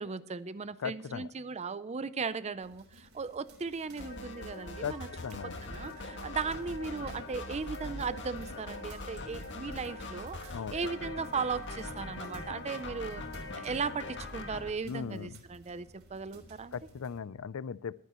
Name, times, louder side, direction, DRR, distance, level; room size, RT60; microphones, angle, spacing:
voice 1, 0.0-5.1 5.4-16.8, right 5 dB, 30° right, 15 dB, 0.5 m, -37 dB
voice 2, 0.8-1.3 4.8-5.6 10.5-10.8 14.8-15.4 16.7-17.9, left 6 dB, 75° left, 20 dB, 0.4 m, -38 dB
sound 1, 2.6-17.2, right 2 dB, 75° right, 3.5 m, -58 dB
sound 2, 4.0-14.7, left 2 dB, 55° left, 1.9 m, -42 dB
22.0 x 9.4 x 3.0 m, 0.76 s
head